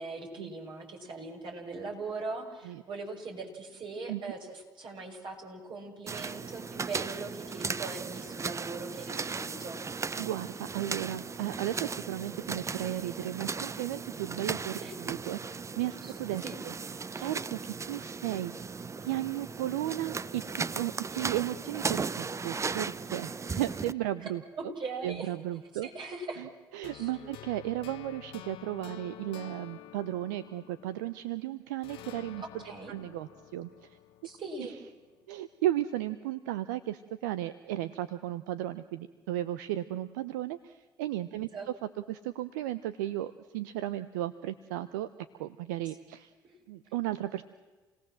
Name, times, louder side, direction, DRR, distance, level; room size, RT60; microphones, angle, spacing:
voice 1, 0.0-9.8 14.8-14.9 16.0-16.1 16.4-16.6 24.2-24.3 24.5-25.3 25.8-26.4 26.9-27.4 32.4-32.9 34.2-34.7 41.5-41.7 46.4-46.5, right 3 dB, 55° right, 1 dB, 6.1 m, -40 dB
sound 1, 6.1-23.9, right 5 dB, 30° right, 0.7 m, -37 dB
voice 2, 10.2-16.7 17.1-18.5 19.0-24.7 25.0-25.9 26.4-32.4 32.9-33.7 34.6-34.7 35.3-41.5 42.1-45.1 45.4-46.3 46.7-47.4, right 14 dB, 85° right, 13 dB, 0.6 m, -35 dB
sound 2, 26.8-31.4 31.8-34.9, left 11 dB, 70° left, 1.1 m, -49 dB
28.5 x 18.5 x 7.6 m, 1.3 s
hypercardioid pair, 50°, 10 cm